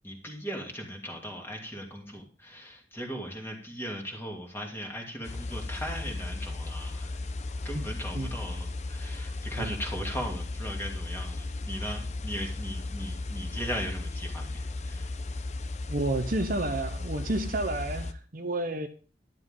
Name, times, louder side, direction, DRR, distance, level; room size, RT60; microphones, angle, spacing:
voice 1, 0.0-7.2 7.6-15.1, equal, 10° left, 2.6 m, -38 dB
sound 1, 5.2-18.1, left 2 dB, 35° left, 0.8 m, -35 dB
voice 2, 15.9-18.9, right 2 dB, 45° right, 0.9 m, -30 dB
12.0 x 11.5 x 3.8 m
head